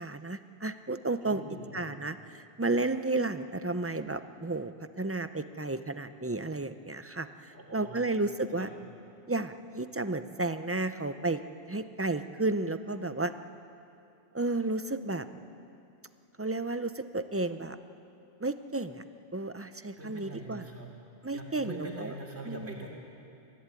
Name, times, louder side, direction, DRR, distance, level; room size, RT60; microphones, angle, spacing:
voice 1, 0.0-1.4 1.7-4.7 5.0-8.7 9.3-11.4 11.7-13.3 14.3-15.3 16.4-17.8 18.4-19.0 19.3-20.7 21.2-22.1 22.4-22.7, right 2 dB, 20° right, 10 dB, 0.4 m, -32 dB
voice 2, 1.2-1.8 7.5-8.1 8.6-8.7 20.0-20.9 21.3-22.9, right 2 dB, 70° right, 0 dB, 3.7 m, -43 dB
22.0 x 15.0 x 9.9 m, 2.6 s
omnidirectional pair, 1.1 m